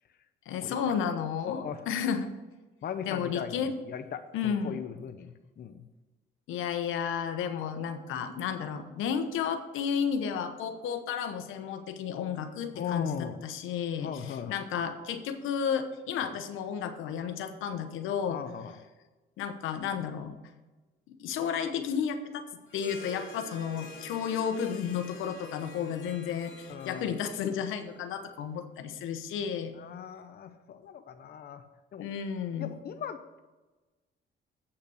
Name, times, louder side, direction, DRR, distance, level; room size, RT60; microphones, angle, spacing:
voice 1, 0.5-2.3 3.1-3.7 4.3-4.8 6.5-18.4 19.4-20.4 21.1-22.4 22.7-29.7 32.0-32.7, left 7 dB, 90° left, 8 dB, 1.0 m, -32 dB
voice 2, 1.4-1.8 2.8-5.9 12.7-13.4 14.0-14.6 18.3-18.7 26.7-27.1 29.7-31.7 31.9-32.1 32.6-33.4, left 8 dB, 50° left, 9 dB, 0.7 m, -38 dB
Harp, 22.7-28.4, left 2 dB, 70° left, 2.5 m, -48 dB
8.4 x 5.8 x 6.2 m, 1.2 s
cardioid pair, 90°, 20 cm